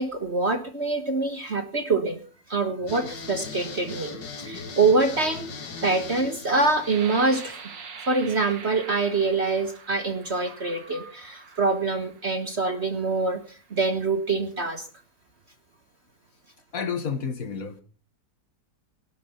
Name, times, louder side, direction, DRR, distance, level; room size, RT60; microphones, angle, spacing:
voice 1, 0.0-2.2 2.5-7.6 8.1-14.9, right 3 dB, 40° right, 1.6 m, -25 dB
sound 1, 2.9-7.8, left 4 dB, 70° left, 2.5 m, -39 dB
sound 2, 6.8-12.4 13.1-13.2 13.7-14.2, right 6 dB, 75° right, 2.5 m, -44 dB
voice 2, 16.7-17.8, left 6 dB, 50° left, 2.0 m, -30 dB
17.0 x 12.0 x 5.8 m
omnidirectional pair, 2.0 m